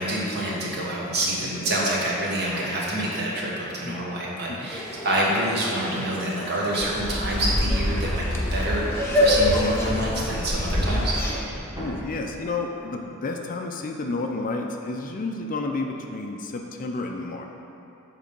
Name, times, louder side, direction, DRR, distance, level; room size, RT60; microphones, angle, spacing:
voice 1, 0.0-11.1, right 1 dB, 50° right, -4 dB, 1.4 m, -27 dB
sound 1, 4.7-11.4, left 1 dB, 10° left, 0.8 m, -28 dB
sound 2, 6.8-12.3, equal, 15° right, 1.5 m, -28 dB
voice 2, 11.7-17.5, left 3 dB, 40° left, 3 dB, 0.4 m, -31 dB
7.6 x 4.0 x 5.2 m, 2.8 s
head